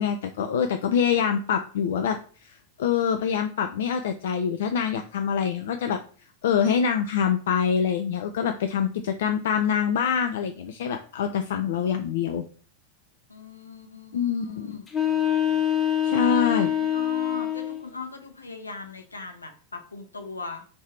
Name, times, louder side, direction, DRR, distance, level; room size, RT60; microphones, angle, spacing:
voice 1, 0.0-6.0 6.4-12.4 14.1-14.8 16.0-16.7, left 7 dB, 60° left, 6 dB, 0.3 m, -25 dB
voice 2, 13.3-15.6 16.0-20.6, left 4 dB, 80° left, 3 dB, 0.7 m, -40 dB
sound 1, 14.9-17.9, left 10 dB, 20° left, 0.8 m, -25 dB
3.3 x 2.7 x 4.4 m, 0.41 s
figure-of-eight pair, 90°, 0 cm